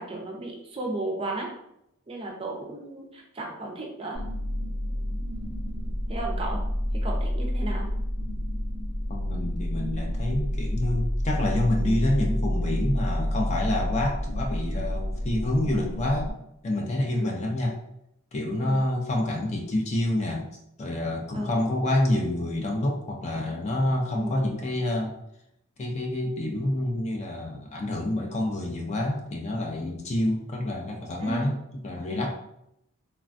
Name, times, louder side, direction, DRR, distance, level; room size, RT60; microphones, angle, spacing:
voice 1, 0.0-1.5 2.1-4.2 6.1-6.6 7.0-7.9 17.1-17.4 18.6-18.8 21.3-21.6 24.1-24.4 31.2-31.5, right 2 dB, 25° right, 0 dB, 0.5 m, -34 dB
sound 1, 4.1-16.3, equal, 85° left, 1.1 m, -29 dB
voice 2, 9.1-16.3 16.6-17.7 18.3-20.5 20.8-25.2 25.8-31.6 31.8-32.3, left 1 dB, 30° left, 0 dB, 0.4 m, -27 dB
3.2 x 2.2 x 2.5 m, 0.78 s
head